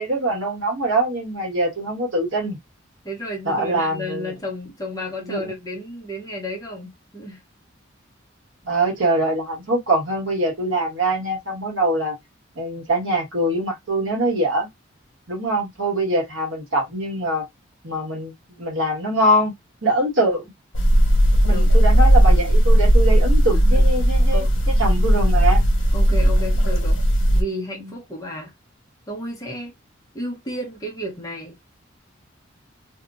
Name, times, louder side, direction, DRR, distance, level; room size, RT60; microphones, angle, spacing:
voice 1, 0.0-2.6 3.4-4.3 5.2-5.5 8.6-12.2 12.5-14.7 15.3-17.4 17.8-19.5 19.8-20.5 21.4-25.6 27.8-27.9, right 1 dB, 70° right, 1.4 m, -23 dB
voice 2, 3.0-7.4 21.4-21.7 23.5-23.8 24.3-24.5 25.9-28.5 29.1-29.7 30.1-31.6, equal, 15° left, 0.8 m, -32 dB
sound 1, 20.7-27.4, equal, 80° left, 1.1 m, -16 dB
2.9 x 2.4 x 2.5 m
head